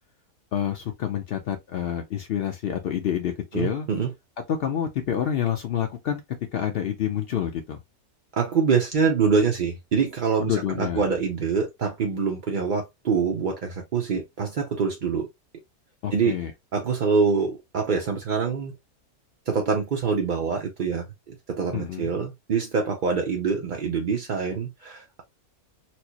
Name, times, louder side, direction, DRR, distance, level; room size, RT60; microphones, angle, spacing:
voice 1, 0.5-3.9 4.5-6.2 6.5-7.8 10.4-11.0 16.0-16.5 21.7-22.1, left 9 dB, 80° left, 0.5 m, -28 dB
voice 2, 3.5-4.1 8.4-15.3 16.1-16.4 16.7-18.7 19.5-25.2, right 5 dB, 60° right, 0.5 m, -25 dB
4.4 x 2.0 x 2.7 m
omnidirectional pair, 1.6 m